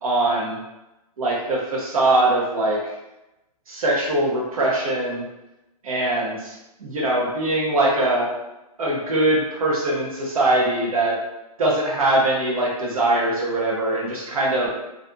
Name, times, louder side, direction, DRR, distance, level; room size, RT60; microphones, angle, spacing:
voice 1, 0.0-0.6 1.2-2.9 3.7-5.2 5.8-8.3 8.8-11.2 11.6-14.7, right 2 dB, 65° right, -3 dB, 0.7 m, -22 dB
2.4 x 2.2 x 2.5 m, 0.96 s
hypercardioid pair, 175°, 20 cm